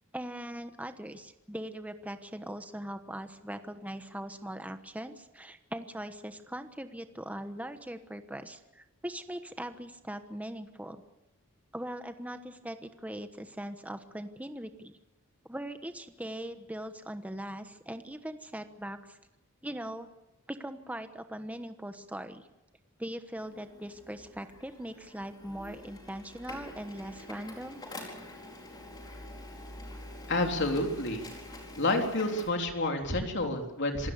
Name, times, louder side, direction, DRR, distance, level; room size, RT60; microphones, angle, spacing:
voice 1, 0.1-11.0 11.7-14.9 15.4-19.2 19.6-20.1 20.5-22.5 23.0-27.9, right 1 dB, 5° right, 8 dB, 1.1 m, -40 dB
Printer, 23.4-32.5, left 1 dB, 20° left, 4.5 m, -46 dB
voice 2, 30.3-31.2 31.8-34.1, left 2 dB, 55° left, 3 dB, 3.6 m, -29 dB
27.0 x 17.5 x 6.9 m, 0.98 s
head